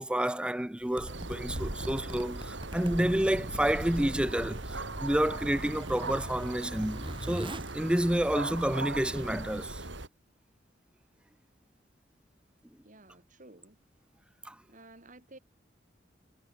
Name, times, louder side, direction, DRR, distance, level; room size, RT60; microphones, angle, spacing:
voice 1, 0.0-9.8 14.5-14.6, right 1 dB, 5° right, 0.5 m, -29 dB
Zipper (clothing), 0.8-8.8, right 1 dB, 25° right, 3.3 m, -43 dB
sound 1, 1.1-10.1, right 2 dB, 70° right, 3.4 m, -39 dB
voice 2, 12.8-13.8 14.7-15.4, right 2 dB, 45° right, 5.0 m, -53 dB
head